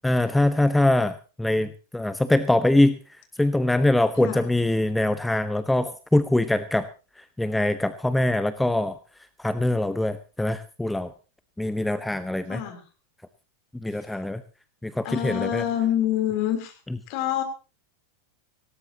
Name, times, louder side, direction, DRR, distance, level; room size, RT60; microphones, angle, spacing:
voice 1, 0.0-3.0 3.4-6.9 7.4-9.0 9.4-11.1 11.6-12.6 13.8-14.4 14.8-15.6, left 1 dB, 5° left, 13 dB, 0.7 m, -23 dB
voice 2, 12.5-12.8 13.9-14.1 15.0-16.8 17.1-17.4, left 11 dB, 45° left, 6 dB, 3.3 m, -26 dB
18.5 x 18.0 x 2.9 m, 0.34 s
figure-of-eight pair, 90°, 0 cm